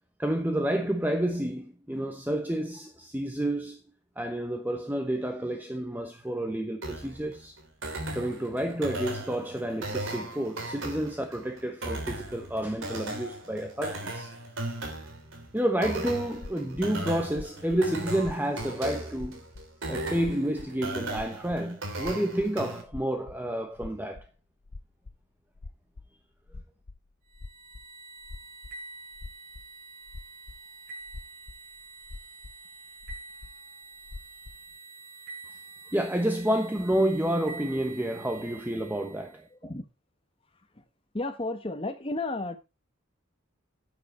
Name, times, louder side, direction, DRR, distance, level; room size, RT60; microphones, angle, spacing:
voice 1, 0.2-3.8 4.2-7.5 8.1-14.3 15.5-19.4 19.9-24.3 35.9-39.5, right 1 dB, 10° right, 1.0 m, -30 dB
sound 1, 6.8-22.8, right 1 dB, 75° right, 3.3 m, -37 dB
sound 2, 16.3-19.7 20.0-21.7 21.9-22.5 22.9-23.5 23.7-24.4 24.6-25.2 25.6-26.1 26.5-27.9 28.2-28.8 29.1-29.7 30.1-30.6 31.0-32.6 33.0-33.5 34.0-34.8, left 3 dB, 65° left, 0.7 m, -44 dB
sound 3, 27.3-39.4, right 3 dB, 40° right, 5.8 m, -47 dB
voice 2, 39.5-39.8 40.7-40.8 41.1-42.6, left 2 dB, 25° left, 1.3 m, -33 dB
10.5 x 9.1 x 4.3 m
head